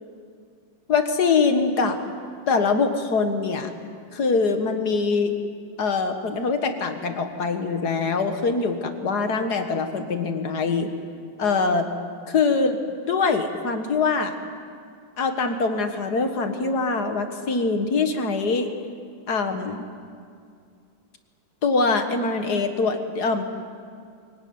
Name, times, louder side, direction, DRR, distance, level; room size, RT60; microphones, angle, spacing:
voice 1, 0.9-2.0 2.5-3.7 4.1-5.3 5.8-10.9 11.4-11.9 12.3-12.8 13.1-14.4 15.2-18.7 19.3-19.9 21.6-23.4, left 4 dB, 55° left, 6 dB, 2.0 m, -23 dB
24.0 x 17.0 x 9.5 m, 2.3 s
omnidirectional pair, 2.1 m